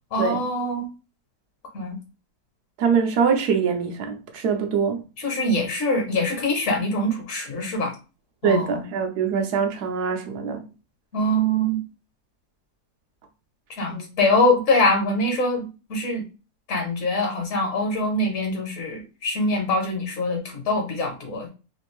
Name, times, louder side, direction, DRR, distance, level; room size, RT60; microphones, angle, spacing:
voice 1, 0.1-0.9 1.7-2.0 5.2-7.9 8.4-8.8 11.1-11.8 13.8-16.2 16.7-21.5, left 1 dB, 55° left, 1.3 m, -24 dB
voice 2, 2.8-5.0 8.4-10.6 13.9-14.1, right 6 dB, 80° right, 1.3 m, -23 dB
3.4 x 2.5 x 3.0 m
omnidirectional pair, 1.7 m